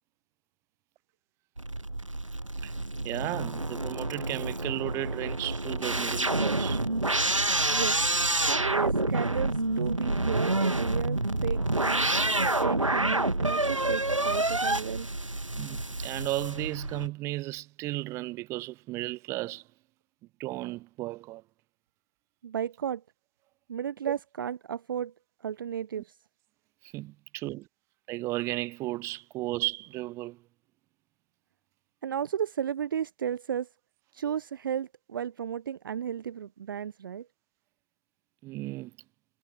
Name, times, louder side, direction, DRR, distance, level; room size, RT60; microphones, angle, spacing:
sound 1, 1.6-17.1, right 2 dB, 85° right, 1.5 m, -28 dB
voice 1, 3.0-6.8 15.6-19.6 20.4-21.4 26.9-27.7 28.1-30.4 38.4-38.9, right 19 dB, 15° right, 1.5 m, -34 dB
voice 2, 8.4-12.1 12.6-15.1 22.4-23.0 23.7-25.1 25.4-26.2 32.0-33.7 34.1-37.3, right 8 dB, 45° right, 0.8 m, -33 dB
figure-of-eight pair, 135°, 16 cm